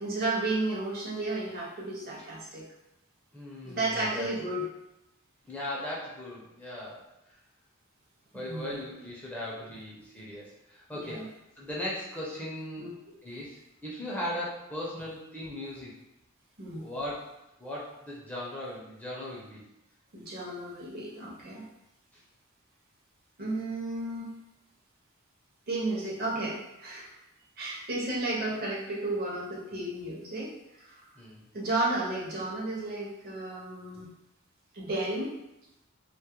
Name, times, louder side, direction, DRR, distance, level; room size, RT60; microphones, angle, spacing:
voice 1, 0.0-2.7 3.6-4.6 8.3-8.8 10.9-11.3 12.8-12.9 16.6-16.9 20.1-21.6 23.4-24.4 25.7-27.2 27.6-30.6 30.8-31.0 31.5-34.1 34.7-35.4, right 2 dB, 45° right, -3 dB, 0.6 m, -33 dB
voice 2, 3.3-4.3 5.5-7.1 8.3-12.9 13.2-15.9 16.7-17.3 17.6-19.6 31.2-31.4, left 1 dB, 5° left, -6 dB, 0.4 m, -38 dB
2.2 x 2.0 x 2.9 m, 0.89 s
head